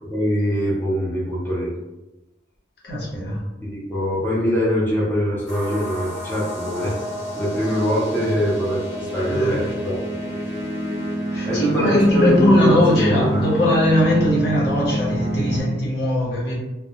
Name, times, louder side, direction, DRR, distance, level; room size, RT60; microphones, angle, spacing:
voice 1, 0.0-1.7 3.6-7.0 7.3-10.0 11.5-13.4, equal, 10° left, -8 dB, 0.5 m, -22 dB
voice 2, 2.8-3.4 9.3-9.7 11.3-16.5, left 1 dB, 60° left, -5 dB, 0.8 m, -20 dB
sound 1, 5.5-15.6, right 1 dB, 85° left, 1.1 m, -27 dB
2.1 x 2.1 x 2.7 m, 1.0 s
head